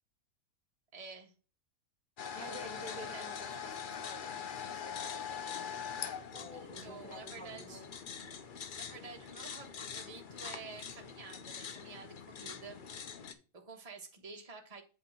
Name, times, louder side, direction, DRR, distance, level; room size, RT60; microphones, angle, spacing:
voice 1, 0.9-1.3 2.3-3.3 6.5-7.8 8.7-13.2 13.5-14.8, right 4 dB, 25° right, 1.3 m, -50 dB
sound 1, 2.2-13.3, left 7 dB, 50° left, 0.6 m, -43 dB
voice 2, 2.3-7.9, equal, 5° left, 2.2 m, -51 dB
8.1 x 3.4 x 6.1 m
omnidirectional pair, 1.6 m